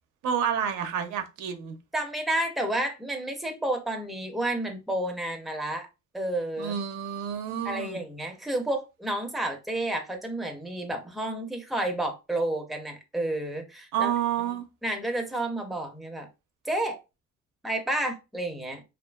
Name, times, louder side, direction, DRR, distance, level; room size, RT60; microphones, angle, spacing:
voice 1, 0.2-1.7 6.6-8.0 13.9-14.6, right 8 dB, 85° right, 0.5 m, -29 dB
voice 2, 1.9-5.9 6.1-6.8 7.6-14.1 14.8-16.3 16.6-17.0 17.6-18.8, right 1 dB, ahead, 0.6 m, -30 dB
2.6 x 2.4 x 2.2 m
cardioid pair, 90°, 30 cm